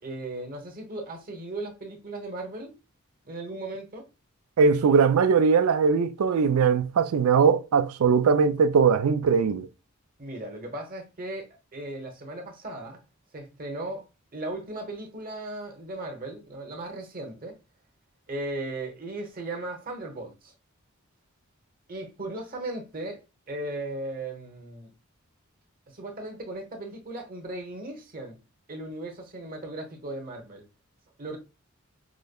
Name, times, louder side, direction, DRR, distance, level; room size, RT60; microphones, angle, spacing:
voice 1, 0.0-2.8 3.2-4.1 10.2-13.0 13.3-14.0 14.3-17.6 18.3-20.5 21.9-23.2 23.5-24.9 25.9-28.4 28.7-30.6 31.2-31.4, right 2 dB, 40° right, 1.0 m, -37 dB
voice 2, 4.6-9.7, right 5 dB, 90° right, 0.4 m, -20 dB
5.0 x 2.1 x 2.2 m
head